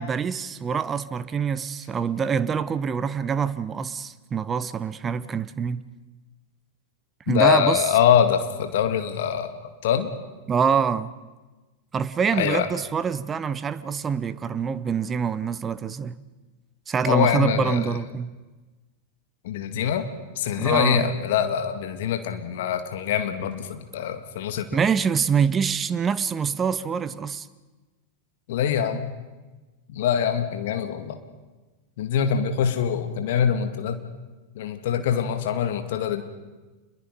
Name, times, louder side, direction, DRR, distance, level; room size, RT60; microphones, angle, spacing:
voice 1, 0.0-5.8 7.3-7.8 10.5-11.1 11.9-16.2 16.9-18.3 20.6-21.1 24.7-27.5, right 6 dB, 20° right, 0.9 m, -25 dB
voice 2, 7.3-10.1 12.3-12.7 17.0-18.0 19.4-20.1 20.4-24.8 28.5-29.1 29.9-31.2 32.0-34.0 34.6-36.2, left 8 dB, 55° left, 2.2 m, -24 dB
28.0 x 22.0 x 5.4 m
figure-of-eight pair, 90°, 0 cm